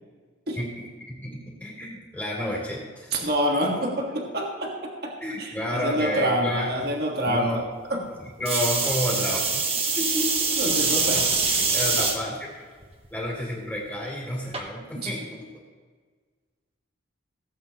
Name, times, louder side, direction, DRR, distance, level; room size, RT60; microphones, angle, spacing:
voice 1, 0.6-3.1 5.2-6.7 7.3-7.6 8.2-9.6 10.0-11.0 11.6-12.7 13.1-15.5, equal, 10° left, -4 dB, 3.0 m, -31 dB
voice 2, 3.1-7.6 7.9-8.0 10.6-11.3 14.9-15.1, equal, 50° right, 0 dB, 1.6 m, -27 dB
sound 1, 8.5-12.2 12.8-13.3 14.5-14.6, right 4 dB, 30° right, 1.3 m, -24 dB
17.0 x 8.5 x 2.9 m, 1.5 s
head